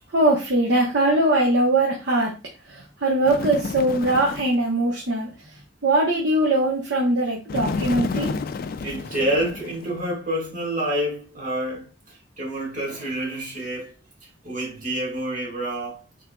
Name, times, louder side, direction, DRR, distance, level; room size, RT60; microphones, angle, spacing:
voice 1, 0.1-2.3 2.7-8.3, right 1 dB, 70° right, 0.9 m, -21 dB
Bird, 3.2-4.6 7.5-10.0, left 4 dB, 50° left, 0.3 m, -30 dB
voice 2, 8.8-13.9 14.2-16.0, right 1 dB, 45° right, 1.7 m, -28 dB
3.6 x 3.6 x 2.2 m
head